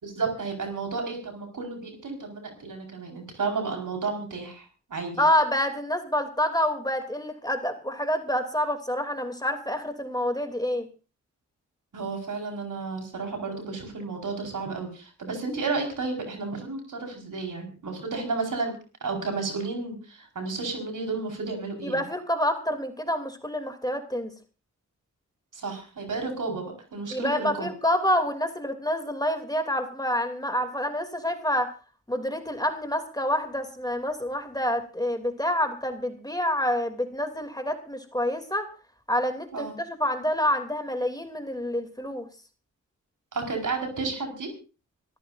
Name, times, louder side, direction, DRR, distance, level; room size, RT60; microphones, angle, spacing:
voice 1, 0.0-5.2 11.9-18.8 19.0-22.1 25.5-27.7 39.5-39.8 43.3-44.5, right 4 dB, 75° right, 3 dB, 4.7 m, -32 dB
voice 2, 5.2-10.9 21.8-24.3 27.1-31.7 32.1-38.7 39.1-42.3, left 1 dB, 10° left, 6 dB, 2.8 m, -27 dB
26.5 x 14.0 x 2.6 m, 0.34 s
cardioid pair, 45°, 31 cm